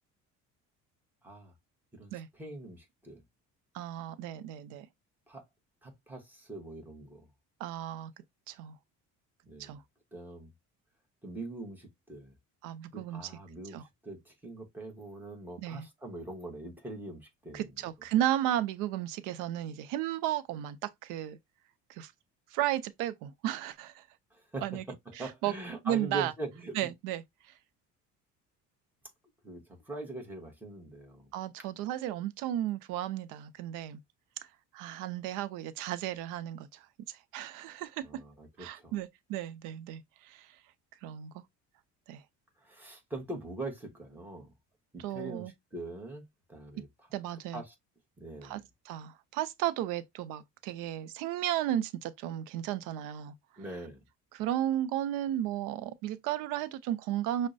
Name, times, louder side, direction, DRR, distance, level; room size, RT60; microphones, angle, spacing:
voice 1, 1.2-1.5 1.9-3.2 5.3-5.4 5.8-7.3 9.5-9.7 10.1-10.5 11.2-12.3 12.9-17.8 24.3-26.9 29.4-31.3 38.0-39.0 42.6-44.5 44.9-46.2 46.5-46.9 47.5-47.7 48.2-48.7 53.6-54.0, right 2 dB, 5° right, 1.0 m, -42 dB
voice 2, 3.7-4.9 7.6-8.1 8.5-8.8 9.6-9.8 12.6-13.2 13.7-13.8 15.6-15.9 17.5-21.4 21.9-22.1 22.5-24.1 24.6-24.8 25.2-25.5 25.8-26.3 26.7-27.2 31.3-34.0 34.7-38.0 38.6-40.6 41.0-41.4 42.1-42.2 45.0-45.5 47.1-47.6 48.4-48.6 48.9-53.3 54.3-57.5, right 12 dB, 85° right, 0.5 m, -34 dB
6.0 x 2.1 x 2.5 m
cardioid pair, 140°, 31 cm